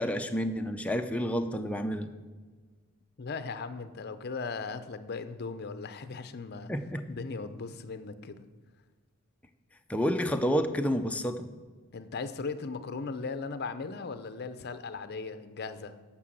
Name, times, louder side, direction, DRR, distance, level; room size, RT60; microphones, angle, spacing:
voice 1, 0.0-2.1 6.7-7.0 9.9-11.4, equal, 5° left, 5 dB, 0.5 m, -29 dB
voice 2, 3.2-6.7 7.1-8.4 11.9-15.9, left 4 dB, 50° left, 11 dB, 0.6 m, -38 dB
9.8 x 6.1 x 7.7 m, 1.4 s
head